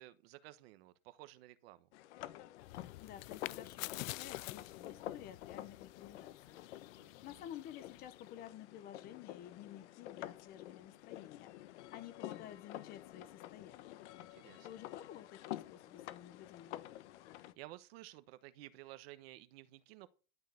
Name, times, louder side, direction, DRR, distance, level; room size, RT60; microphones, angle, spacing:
voice 1, 0.0-1.9 7.0-7.5 14.3-14.7 17.3-20.1, right 16 dB, 50° right, 1.1 m, -54 dB
sound 1, 1.9-17.5, left 14 dB, 60° left, 1.2 m, -49 dB
sound 2, 2.6-8.3, left 19 dB, 75° left, 0.6 m, -49 dB
voice 2, 3.0-6.6 7.2-11.5 11.9-14.0 14.6-16.8, left 11 dB, 25° left, 0.9 m, -52 dB
12.5 x 6.4 x 7.8 m
supercardioid pair, 175°, 40 cm